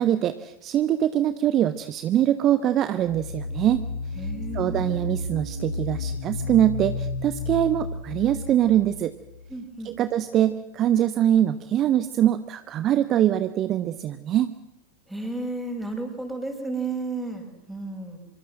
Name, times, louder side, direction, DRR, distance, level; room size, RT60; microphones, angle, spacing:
voice 1, 0.0-3.8 4.5-9.1 9.8-14.5, right 11 dB, 30° right, 12 dB, 1.0 m, -23 dB
sound 1, 3.0-9.6, left 3 dB, 70° left, 5.2 m, -32 dB
voice 2, 4.2-4.8 9.5-9.9 15.1-18.2, right 2 dB, 5° right, 4 dB, 5.8 m, -32 dB
26.0 x 24.0 x 7.7 m, 0.89 s
figure-of-eight pair, 90°, 0 cm